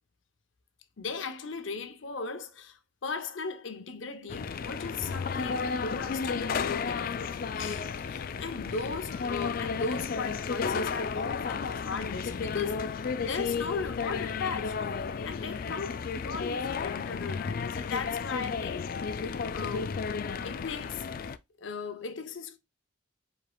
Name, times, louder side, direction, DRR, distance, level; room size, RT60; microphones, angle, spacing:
voice 1, 1.0-14.9 15.2-18.8 19.2-20.1 20.4-21.1 21.6-22.6, left 4 dB, 75° left, 0.7 m, -37 dB
sound 1, 4.3-21.4, left 5 dB, 45° left, 0.3 m, -33 dB
5.0 x 4.3 x 2.3 m
head